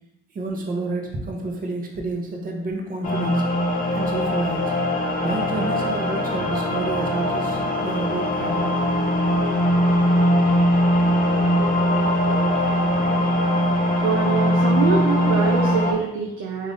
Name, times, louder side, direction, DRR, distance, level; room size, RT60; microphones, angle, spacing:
voice 1, 0.3-3.4 3.9-4.6 5.2-8.7, right 2 dB, 45° right, 1 dB, 0.8 m, -29 dB
sound 1, 3.0-15.9, equal, 45° left, 0.7 m, -21 dB
voice 2, 13.9-16.7, right 6 dB, 90° right, -1 dB, 0.5 m, -25 dB
3.7 x 2.6 x 3.5 m, 0.88 s
cardioid pair, 90°, 20 cm